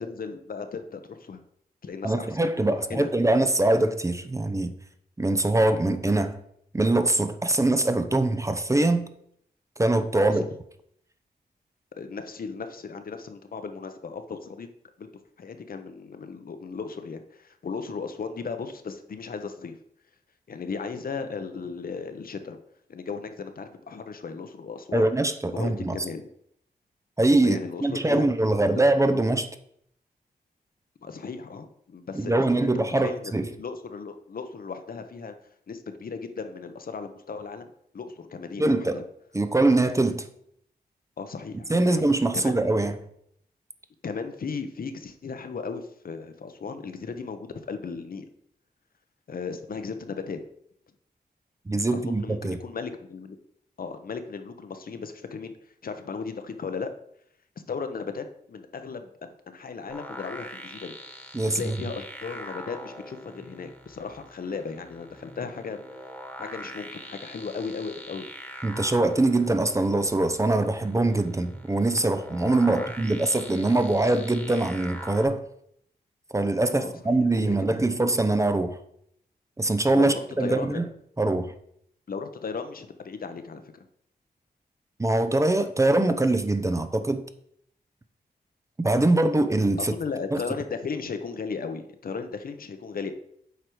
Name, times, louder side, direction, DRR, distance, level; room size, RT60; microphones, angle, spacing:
voice 1, 0.0-1.4 1.8-2.4 2.9-3.1 10.2-10.5 12.0-14.7 15.0-15.1 15.4-19.8 20.5-22.6 22.9-25.1 25.5-26.3 27.4-28.3 28.7-28.8 31.0-32.3 33.0-33.3 33.6-35.3 35.7-37.7 37.9-39.0 41.2-42.0 42.3-42.6 44.0-48.3 49.3-50.4 51.9-53.4 53.8-55.5 55.8-56.9 57.7-61.0 61.5-65.8 66.4-68.3 72.7-72.9 76.8-77.5 79.9-80.9 82.1-83.8 89.8-93.1, left 5 dB, 60° left, 0.8 m, -36 dB
voice 2, 2.0-4.7 5.2-6.4 6.7-9.1 9.8-10.5 24.9-26.0 27.2-29.5 32.1-33.5 38.6-39.0 39.3-40.3 41.7-43.0 51.7-52.6 61.3-61.7 68.6-75.4 76.3-78.8 79.6-80.9 81.2-81.5 85.0-87.2 88.8-89.9 90.3-90.4, right 2 dB, 20° right, 0.6 m, -23 dB
sound 1, 59.9-75.3, equal, 10° left, 1.4 m, -43 dB
8.2 x 4.8 x 4.6 m
wide cardioid pair, 85°, 17 cm